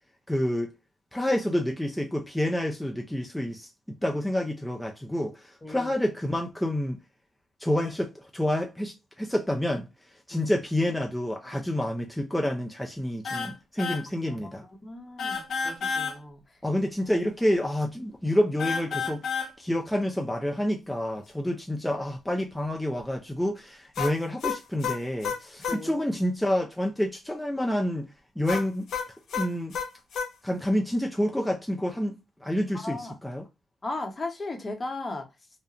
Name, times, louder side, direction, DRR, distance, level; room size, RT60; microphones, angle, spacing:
voice 1, 0.3-0.7 1.1-7.0 7.6-9.9 10.3-14.6 16.6-19.2 19.6-28.1 28.4-28.9 29.3-29.8 30.4-32.2 32.4-33.5, left 1 dB, 5° left, 0.5 m, -28 dB
voice 2, 5.6-5.9 10.3-10.5 14.3-14.4 14.8-16.4 25.7-25.9 32.7-33.1 33.8-35.3, left 2 dB, 35° left, 0.8 m, -36 dB
sound 1, 13.2-13.5 13.8-14.0 15.2-16.1 18.6-19.5 24.0-25.8 28.5-30.3, left 6 dB, 70° left, 0.6 m, -30 dB
2.4 x 2.1 x 2.7 m
supercardioid pair, 45°, 0 cm